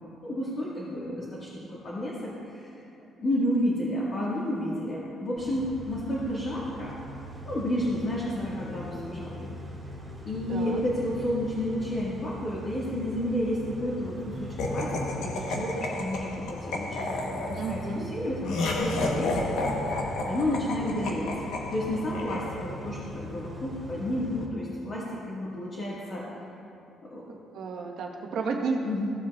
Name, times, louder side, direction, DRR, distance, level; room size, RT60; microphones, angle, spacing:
voice 1, 0.2-2.8 3.2-7.0 7.4-9.5 10.2-19.6 20.2-21.3 21.7-26.2 27.0-27.3 28.8-29.1, left 1 dB, 35° left, -7 dB, 1.6 m, -31 dB
Car / Idling / Accelerating revving vroom, 5.4-24.5, equal, 5° right, 1.7 m, -41 dB
voice 2, 10.5-10.8 17.6-18.0 27.5-28.9, right 4 dB, 60° right, 0 dB, 1.2 m, -31 dB
Laughter, 14.6-23.0, left 2 dB, 85° left, 1.0 m, -32 dB
16.0 x 7.3 x 2.4 m, 2.7 s
cardioid pair, 155°, 0 cm